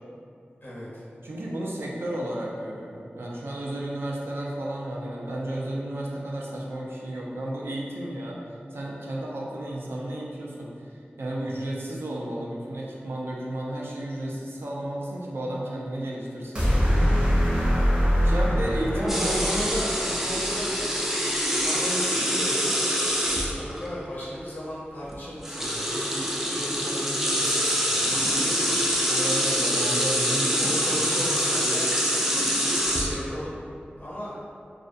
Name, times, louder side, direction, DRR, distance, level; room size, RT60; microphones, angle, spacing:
voice 1, 0.6-1.0 11.4-11.7 18.7-22.7 23.5-29.6 30.3-31.9 32.2-33.6 34.0-34.4, equal, 60° left, -7 dB, 0.5 m, -36 dB
voice 2, 1.2-8.4 8.7-10.7 11.2-16.7 18.2-19.7 29.1-31.3, right 1 dB, 80° right, -4 dB, 0.4 m, -32 dB
sound 1, 16.5-20.8, equal, 30° right, 0.7 m, -24 dB
sound 2, 19.1-23.9 25.0-25.2 25.4-33.3, equal, 10° right, 0.3 m, -25 dB
2.4 x 2.2 x 2.5 m, 2.3 s
wide cardioid pair, 75°, 4 cm